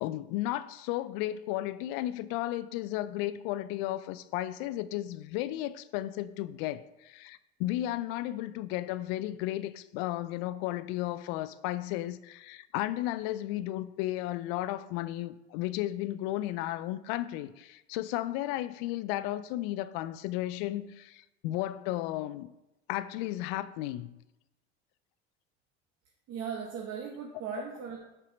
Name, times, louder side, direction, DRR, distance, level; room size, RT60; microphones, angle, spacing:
voice 1, 0.0-22.5 22.9-24.1, left 15 dB, 60° left, 0.5 m, -34 dB
voice 2, 26.3-28.0, right 7 dB, 50° right, 1.0 m, -38 dB
5.5 x 4.7 x 5.1 m
hypercardioid pair, 70°, 33 cm